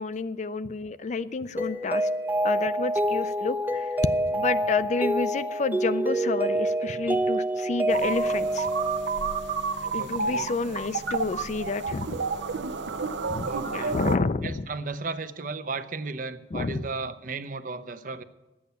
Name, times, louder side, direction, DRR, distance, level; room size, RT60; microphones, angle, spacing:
voice 1, 0.0-2.1 2.4-3.9 4.3-8.7 9.9-12.1 13.3-14.7 16.5-16.9, left 4 dB, 40° left, 13 dB, 0.4 m, -30 dB
Mallet percussion, 1.6-9.7, right 1 dB, 10° right, 0.5 m, -27 dB
sound 1, 7.9-14.2, right 4 dB, 85° right, 0.8 m, -31 dB
voice 2, 10.0-10.5 13.4-14.0 14.4-18.2, right 3 dB, 50° right, 11 dB, 0.7 m, -35 dB
11.0 x 8.6 x 8.2 m, 1.0 s
head